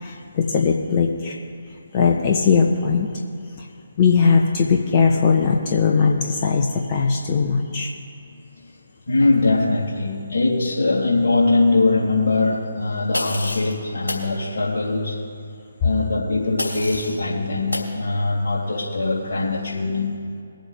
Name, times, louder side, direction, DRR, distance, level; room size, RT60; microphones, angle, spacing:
voice 1, 0.0-1.4 1.9-3.2 3.6-3.7 4.0-7.9, left 5 dB, 30° left, 0 dB, 1.0 m, -19 dB
voice 2, 9.1-15.2 15.8-20.1, left 3 dB, 55° left, -6 dB, 3.4 m, -21 dB
sound 1, 13.1-13.7 14.1-14.3 16.6-17.2 17.7-17.9, left 2 dB, 80° left, 3.2 m, -28 dB
22.0 x 7.9 x 3.5 m, 2.4 s
figure-of-eight pair, 140°, 0 cm